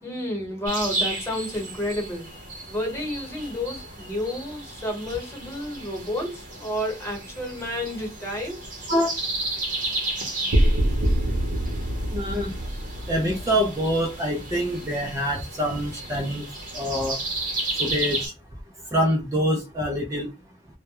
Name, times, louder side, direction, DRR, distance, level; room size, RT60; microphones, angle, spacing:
voice 1, 0.0-2.3 2.7-8.7, left 1 dB, 15° left, 1.0 m, -30 dB
sound 1, 0.6-18.3, right 2 dB, 45° right, 0.7 m, -34 dB
sound 2, 10.5-14.9, right 1 dB, 90° right, 0.6 m, -25 dB
voice 2, 12.1-12.5 13.1-16.5 16.7-17.2 17.8-18.3 18.9-20.3, equal, 15° right, 0.4 m, -25 dB
2.2 x 2.1 x 2.8 m
head